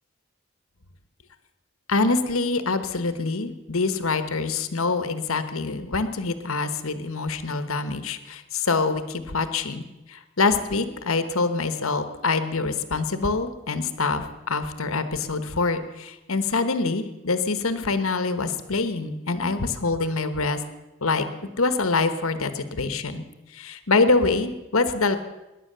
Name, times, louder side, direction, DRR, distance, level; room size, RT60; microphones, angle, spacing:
voice 1, 1.9-9.8 10.1-20.6 21.0-21.3 21.6-23.2 23.5-25.2, left 3 dB, 75° left, 11 dB, 1.2 m, -25 dB
18.0 x 11.0 x 6.8 m, 1.0 s
head